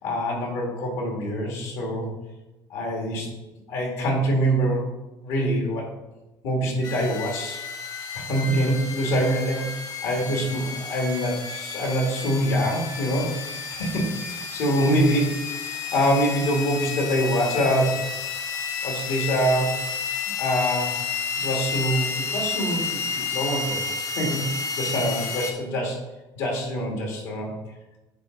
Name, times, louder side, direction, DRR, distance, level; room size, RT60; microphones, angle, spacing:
voice 1, 0.0-2.1 2.7-3.3 3.7-4.9 5.2-5.8 6.4-7.6 8.1-15.5 15.9-18.1 18.8-19.8 20.4-21.1 21.4-23.8 24.2-24.5 24.8-26.0 26.4-27.5, equal, 85° left, 0 dB, 2.0 m, -25 dB
sound 1, 6.8-25.5, left 5 dB, 45° left, 1.0 m, -31 dB
8.9 x 3.4 x 3.8 m, 1.0 s
supercardioid pair, 100°, 9 cm